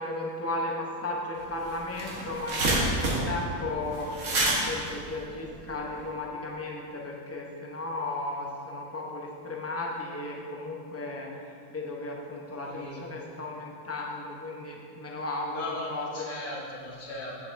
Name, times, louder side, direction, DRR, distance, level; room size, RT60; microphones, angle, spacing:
voice 1, 0.0-16.3, left 2 dB, 15° left, -2 dB, 0.5 m, -35 dB
sound 1, 1.4-1.5 1.7-6.0, right 2 dB, 65° right, 1.5 m, -28 dB
voice 2, 12.6-13.0 15.5-17.5, left 2 dB, 70° left, -4 dB, 1.6 m, -38 dB
7.7 x 7.7 x 2.5 m, 2.4 s
omnidirectional pair, 1.4 m